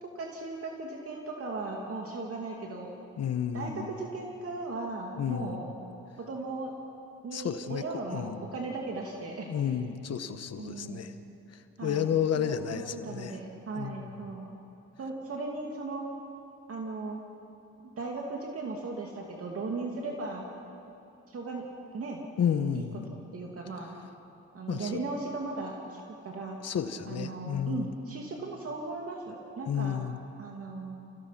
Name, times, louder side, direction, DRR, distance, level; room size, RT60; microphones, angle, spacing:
voice 1, 0.0-2.9 3.5-5.7 6.2-6.7 7.2-9.7 10.6-11.0 11.8-14.5 15.0-16.1 16.7-17.2 17.8-20.5 21.3-21.7 21.9-22.2 22.7-22.8 23.3-23.9 24.5-26.6 27.0-30.0 30.4-31.0, right 3 dB, 50° right, 0 dB, 2.6 m, -37 dB
voice 2, 3.2-3.9 5.2-5.6 7.3-7.8 8.1-8.4 9.5-11.1 11.5-13.4 13.8-14.1 22.4-23.1 24.7-25.0 26.6-27.9 29.7-30.2, left 8 dB, 55° left, 10 dB, 1.3 m, -31 dB
28.5 x 17.0 x 5.9 m, 2.9 s
cardioid pair, 90°, 30 cm